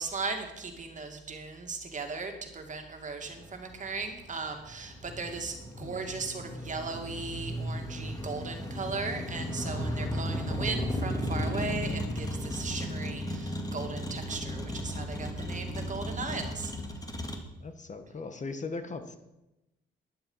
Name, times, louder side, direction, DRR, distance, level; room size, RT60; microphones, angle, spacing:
voice 1, 0.0-16.7, right 4 dB, 40° right, 4 dB, 2.5 m, -37 dB
Motor vehicle (road), 3.3-17.4, equal, 20° left, 2.1 m, -35 dB
voice 2, 17.6-19.2, left 3 dB, 40° left, 8 dB, 1.4 m, -39 dB
11.5 x 10.5 x 5.8 m, 0.94 s
cardioid pair, 90°, 20 cm